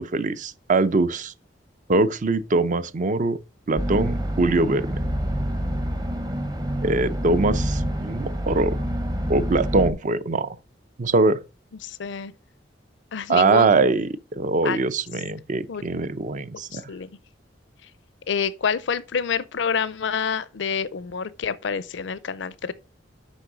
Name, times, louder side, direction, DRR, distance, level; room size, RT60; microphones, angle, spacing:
voice 1, 0.0-1.3 1.9-3.4 3.7-4.9 6.8-8.8 9.3-10.6 11.0-11.4 13.3-16.9, right 3 dB, 45° right, 0.6 m, -22 dB
sound 1, 3.8-9.9, equal, 20° right, 0.8 m, -27 dB
voice 2, 11.8-12.3 13.1-13.9 14.6-14.8 15.7-15.8 16.7-17.1 18.3-22.7, left 6 dB, 70° left, 0.5 m, -27 dB
6.4 x 5.4 x 6.0 m
head